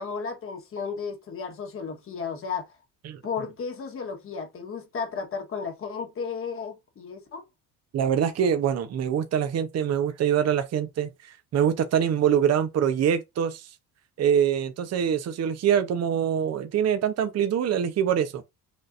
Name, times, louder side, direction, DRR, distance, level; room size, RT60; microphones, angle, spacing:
voice 1, 0.0-2.8 3.2-7.4, left 5 dB, 35° left, 1.4 m, -34 dB
voice 2, 7.9-13.7 14.2-18.4, right 8 dB, 40° right, 0.8 m, -24 dB
6.3 x 2.6 x 2.5 m
cardioid pair, 120°, 38 cm